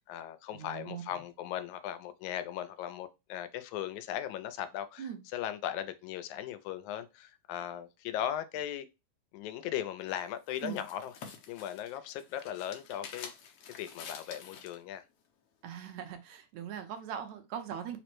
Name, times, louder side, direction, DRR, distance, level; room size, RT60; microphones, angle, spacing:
voice 1, 0.0-8.9 9.3-11.1 11.5-13.3 13.8-15.0, left 11 dB, 90° left, 2.0 m, -38 dB
voice 2, 0.5-1.2 5.0-5.2 10.6-10.8 15.6-18.0, right 8 dB, 80° right, 2.0 m, -41 dB
sound 1, 10.0-14.8, left 6 dB, 70° left, 1.5 m, -48 dB
4.9 x 2.1 x 4.4 m
omnidirectional pair, 3.3 m